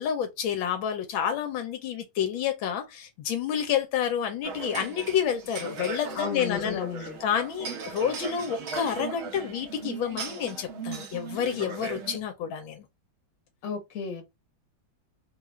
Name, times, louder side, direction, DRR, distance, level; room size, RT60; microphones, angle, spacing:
voice 1, 0.0-12.8, left 8 dB, 80° left, 1.4 m, -29 dB
sound 1, 4.4-12.2, right 5 dB, 80° right, 1.9 m, -38 dB
voice 2, 6.1-7.2 13.6-14.2, left 6 dB, 45° left, 1.4 m, -34 dB
4.4 x 2.3 x 3.0 m
omnidirectional pair, 2.2 m